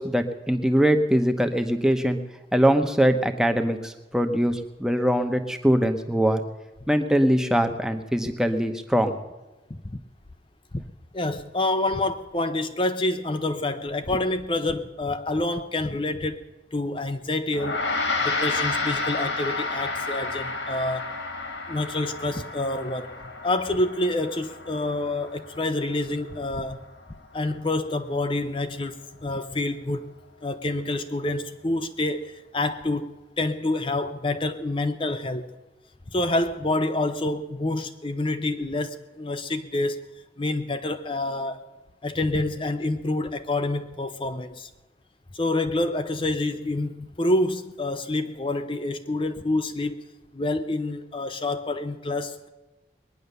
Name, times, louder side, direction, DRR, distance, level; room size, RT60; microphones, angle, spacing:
voice 1, 0.0-2.2 2.5-6.4 6.9-9.2, equal, 5° right, 0.9 m, -22 dB
voice 2, 11.1-16.4 16.7-17.8 18.2-21.1 21.7-23.1 23.4-26.8 27.3-30.1 30.4-35.6 36.1-40.0 40.4-41.7 42.0-44.7 45.3-50.0 50.3-52.5, left 2 dB, 30° left, 0.6 m, -27 dB
Gong, 17.5-27.2, left 3 dB, 80° left, 2.0 m, -31 dB
21.0 x 10.0 x 6.8 m
head